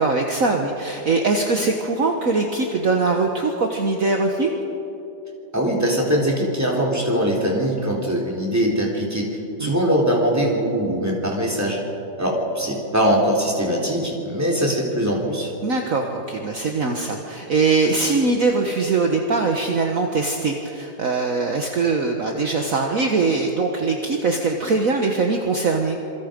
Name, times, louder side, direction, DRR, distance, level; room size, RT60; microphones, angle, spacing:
voice 1, 0.0-4.5 9.6-9.8 15.6-26.0, right 3 dB, 50° right, 2 dB, 1.7 m, -22 dB
voice 2, 5.5-11.8 12.2-15.5, equal, 10° right, -2 dB, 3.7 m, -22 dB
27.0 x 24.0 x 5.3 m, 3.0 s
omnidirectional pair, 1.9 m